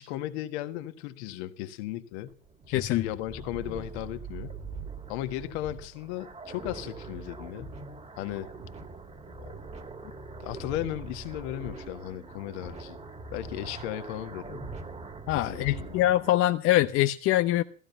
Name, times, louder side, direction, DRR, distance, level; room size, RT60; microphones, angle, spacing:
voice 1, 0.0-2.3 2.7-4.6 5.1-7.8 8.2-8.5 10.0-10.1 10.4-13.0 13.3-14.7 15.3-16.0, left 14 dB, 50° left, 1.7 m, -36 dB
sound 1, 2.1-16.3, right 3 dB, 15° right, 2.4 m, -42 dB
voice 2, 2.7-3.1 15.3-17.6, left 15 dB, 30° left, 0.7 m, -24 dB
16.0 x 15.0 x 5.6 m
hypercardioid pair, 100°, 41 cm